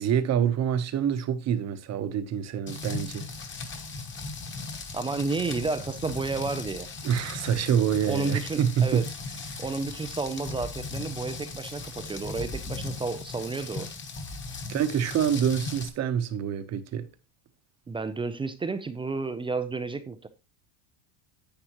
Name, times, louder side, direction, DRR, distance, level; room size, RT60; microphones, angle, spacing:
voice 1, 0.0-3.3 7.0-9.1 9.5-9.6 14.7-17.1, right 8 dB, 35° right, 1.0 m, -26 dB
Rain, 2.7-15.9, left 3 dB, 25° left, 1.4 m, -38 dB
voice 2, 4.9-6.9 8.0-9.0 9.6-13.9 17.9-20.3, right 4 dB, 10° right, 0.4 m, -31 dB
10.0 x 8.5 x 3.0 m
cardioid pair, 145°, 47 cm